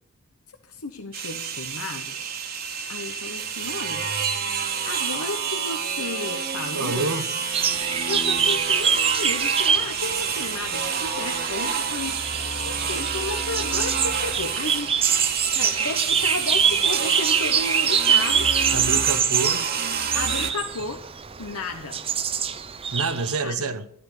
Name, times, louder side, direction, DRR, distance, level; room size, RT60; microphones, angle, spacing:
voice 1, 0.7-2.2 2.9-4.1 4.9-7.1 8.1-12.2 12.6-15.0 15.5-18.5 20.1-21.0 21.4-22.0 23.4-23.7, left 3 dB, 90° left, 1.1 m, -33 dB
sound 1, 1.1-20.5, right 6 dB, 45° right, 1.5 m, -28 dB
voice 2, 6.7-7.3 18.7-19.7 22.9-23.8, right 3 dB, 85° right, 1.1 m, -27 dB
sound 2, 7.5-23.4, right 7 dB, 25° right, 0.7 m, -25 dB
12.5 x 11.5 x 6.7 m
head